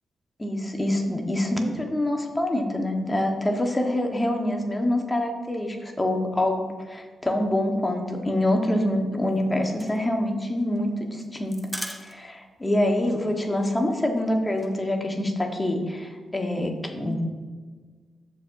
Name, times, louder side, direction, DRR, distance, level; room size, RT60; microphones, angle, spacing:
voice 1, 0.4-11.6 12.0-17.2, left 1 dB, 20° left, 3 dB, 1.4 m, -25 dB
sound 1, 9.2-12.5 12.8-12.9 13.2-13.3 13.6-14.7, right 1 dB, 10° right, 0.9 m, -40 dB
13.0 x 4.7 x 2.7 m, 1.5 s
hypercardioid pair, 40°, 0 cm